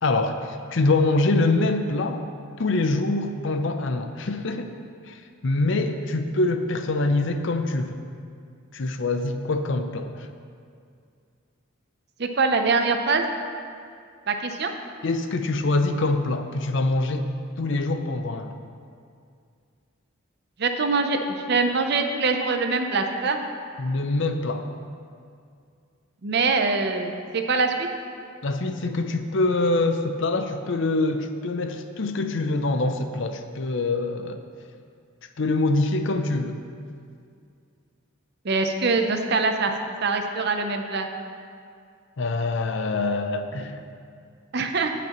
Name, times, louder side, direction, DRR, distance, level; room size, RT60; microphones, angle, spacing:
voice 1, 0.0-2.2 2.6-4.7 5.1-8.0 8.7-10.3 15.0-17.3 17.6-18.6 23.8-24.7 28.4-34.4 35.4-36.6 42.2-43.8, left 2 dB, 60° left, 7 dB, 0.6 m, -24 dB
voice 2, 12.2-13.2 14.3-14.7 20.6-23.4 26.2-27.9 38.4-39.7 40.0-41.1 44.5-44.9, right 4 dB, 50° right, 5 dB, 0.6 m, -23 dB
17.0 x 6.0 x 3.0 m, 2.3 s
head